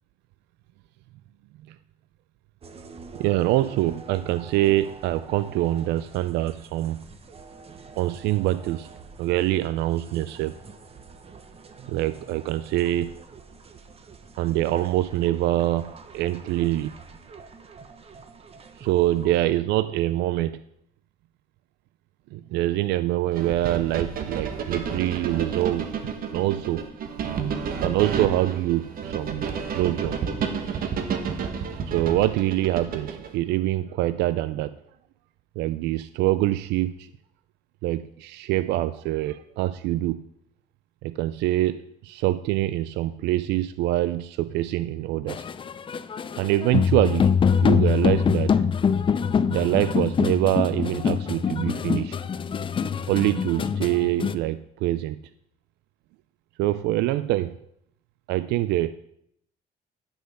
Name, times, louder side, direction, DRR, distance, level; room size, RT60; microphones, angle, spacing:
sound 1, 2.6-19.4, right 4 dB, 35° right, 1.0 m, -46 dB
voice 1, 3.1-7.1 8.0-8.9 9.2-10.6 11.9-13.1 14.4-16.9 18.8-20.6 22.3-26.9 27.8-30.2 31.8-34.8 35.6-37.1 37.8-40.2 41.0-45.4 46.4-47.3 47.6-48.6 49.5-52.2 53.1-55.2 56.6-57.6 58.3-58.9, right 15 dB, 85° right, 14 dB, 0.4 m, -25 dB
sound 2, 23.3-33.3, right 6 dB, 60° right, 1.2 m, -31 dB
sound 3, 45.3-54.3, left 6 dB, 30° left, 0.5 m, -24 dB
9.9 x 6.5 x 5.5 m, 0.75 s
cardioid pair, 110°, 17 cm